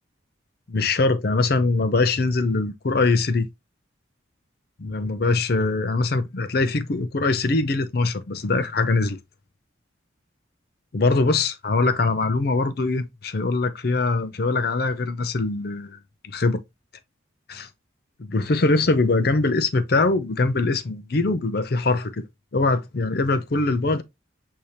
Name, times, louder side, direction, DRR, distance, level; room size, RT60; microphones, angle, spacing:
voice 1, 0.7-3.5 4.8-9.2 10.9-16.0 16.2-16.6 17.5-17.7 18.2-22.2 22.5-24.0, left 3 dB, 50° left, 0.5 m, -22 dB
6.6 x 2.8 x 2.8 m
head